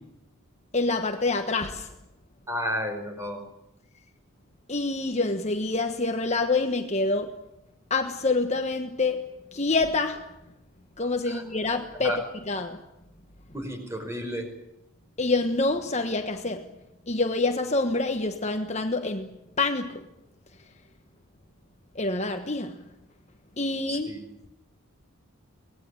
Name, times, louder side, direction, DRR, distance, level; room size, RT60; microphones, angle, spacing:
voice 1, 0.7-1.9 4.7-7.4 7.9-9.2 9.5-10.3 11.0-12.2 12.5-12.8 15.2-16.7 17.1-20.1 21.9-22.8 23.6-24.2, left 3 dB, 30° left, 1.3 m, -27 dB
voice 2, 2.5-3.4 11.3-11.4 12.0-12.2 13.5-14.5 23.9-24.3, equal, 15° right, 5.4 m, -32 dB
25.0 x 19.5 x 9.7 m
head